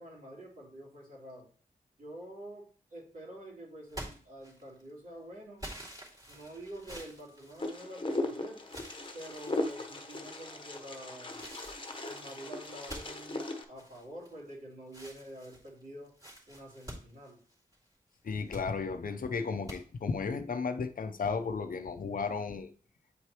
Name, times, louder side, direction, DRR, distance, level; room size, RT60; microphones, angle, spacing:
voice 1, 0.0-1.4 2.0-2.6 2.9-5.7 6.3-8.6 9.1-11.5 12.0-16.1 16.5-17.4, right 1 dB, 60° right, 3.3 m, -47 dB
sound 1, 3.9-4.9 5.6-8.2 8.7-9.7 10.3-10.8 11.4-14.5 14.9-17.9 18.3-18.7 19.7-19.8, right 1 dB, 25° right, 2.8 m, -48 dB
Wind, 7.6-13.6, left 2 dB, 35° left, 1.0 m, -38 dB
voice 2, 18.2-22.7, left 5 dB, 65° left, 0.6 m, -34 dB
8.6 x 4.7 x 3.0 m
cardioid pair, 60°, 15 cm